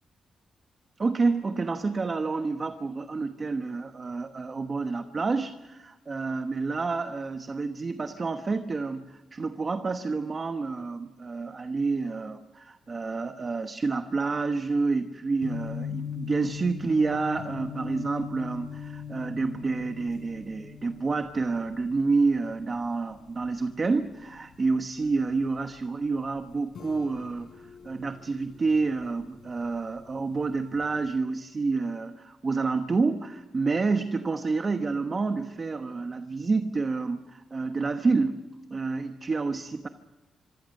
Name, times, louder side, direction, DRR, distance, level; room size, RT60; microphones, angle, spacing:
voice 1, 1.0-38.4 38.7-39.9, right 4 dB, 30° right, 7 dB, 1.1 m, -29 dB
sound 1, 15.4-31.1, left 7 dB, 55° left, 3.9 m, -42 dB
26.5 x 24.5 x 6.6 m, 1.0 s
wide cardioid pair, 150°, 0 cm